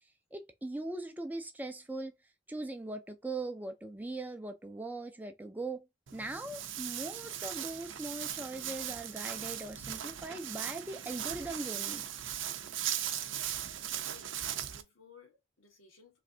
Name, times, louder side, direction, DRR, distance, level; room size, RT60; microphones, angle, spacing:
voice 1, 0.3-2.1 2.5-5.9 6.1-12.0, right 2 dB, 10° right, 0.4 m, -40 dB
Walk footsteps, 6.1-14.8, right 10 dB, 70° right, 0.5 m, -38 dB
voice 2, 13.2-14.3 14.7-16.2, left 5 dB, 90° left, 1.4 m, -59 dB
3.2 x 2.6 x 3.8 m
head